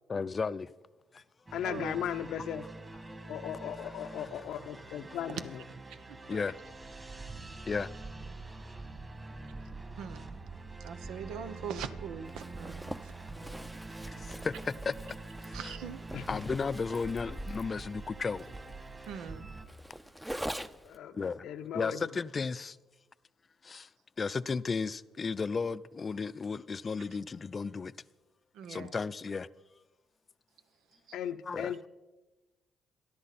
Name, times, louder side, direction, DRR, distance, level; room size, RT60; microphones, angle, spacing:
voice 1, 0.1-0.7 1.1-1.2 3.8-3.9 6.3-6.5 7.7-7.9 14.0-15.2 15.4-15.7 16.3-18.5 21.1-21.5 21.7-22.8 23.6-23.9 24.2-27.9 28.7-29.5 31.5-31.7, left 5 dB, 35° left, 0.5 m, -34 dB
voice 2, 1.5-2.7 3.3-5.4 16.1-16.4 20.8-22.1 31.1-31.9, left 9 dB, 80° left, 0.7 m, -37 dB
sound 1, 1.5-19.7, right 3 dB, 25° right, 2.5 m, -45 dB
voice 3, 5.9-6.4 10.0-10.4 10.8-13.1 15.5-16.0 19.1-19.5 28.5-28.9 31.1-31.2, right 7 dB, 90° right, 1.0 m, -42 dB
Zipper (clothing), 12.3-21.0, equal, 5° right, 0.6 m, -44 dB
27.5 x 11.5 x 4.2 m
cardioid pair, 90°, 0 cm